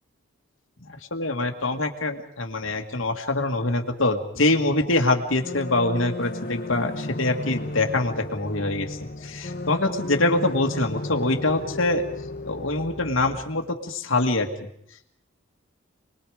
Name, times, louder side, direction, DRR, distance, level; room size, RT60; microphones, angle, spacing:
voice 1, 0.8-12.0 12.5-14.7, left 2 dB, 75° left, 3 dB, 2.0 m, -24 dB
sound 1, 5.4-13.4, left 2 dB, 45° left, 1.6 m, -34 dB
28.5 x 21.0 x 5.1 m, 0.74 s
head